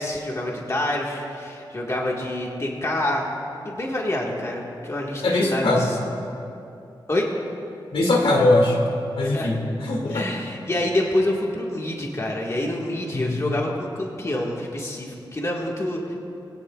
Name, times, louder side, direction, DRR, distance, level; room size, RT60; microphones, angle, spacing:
voice 1, 0.0-3.3 3.6-6.0 7.1-7.3 9.2-9.5 10.1-16.1, left 1 dB, 35° left, -2 dB, 1.7 m, -27 dB
voice 2, 5.2-5.9 7.9-8.8 9.2-10.3 13.1-13.4, left 2 dB, 80° left, 0 dB, 2.2 m, -21 dB
23.5 x 16.5 x 2.4 m, 2.7 s
wide cardioid pair, 120°, 9 cm